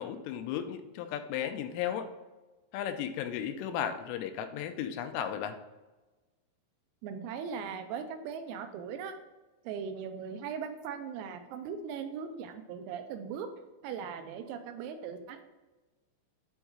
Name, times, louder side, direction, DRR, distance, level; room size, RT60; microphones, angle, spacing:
voice 1, 0.0-2.1 2.7-5.6, left 9 dB, 85° left, 7 dB, 3.0 m, -35 dB
voice 2, 7.0-9.1 9.7-13.5 13.8-15.4, right 7 dB, 85° right, 7 dB, 3.4 m, -39 dB
7.9 x 3.6 x 4.7 m, 1.2 s
omnidirectional pair, 6.0 m